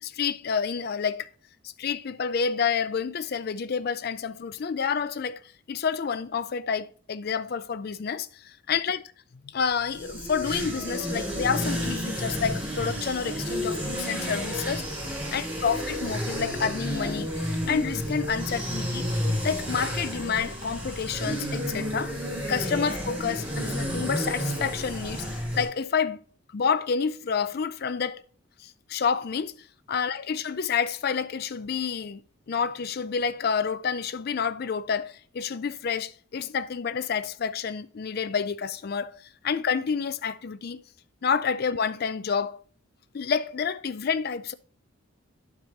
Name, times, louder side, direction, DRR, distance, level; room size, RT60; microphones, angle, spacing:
voice 1, 0.0-1.3 1.8-5.4 5.7-9.0 9.5-14.9 15.3-17.3 17.7-19.1 19.4-22.2 22.5-26.2 26.5-28.2 28.6-29.6 29.9-32.2 32.5-40.8 41.2-42.6 43.1-44.6, left 6 dB, 45° left, 0.4 m, -29 dB
sound 1, 9.7-25.6, equal, 25° right, 3.9 m, -31 dB
12.0 x 4.7 x 2.8 m
head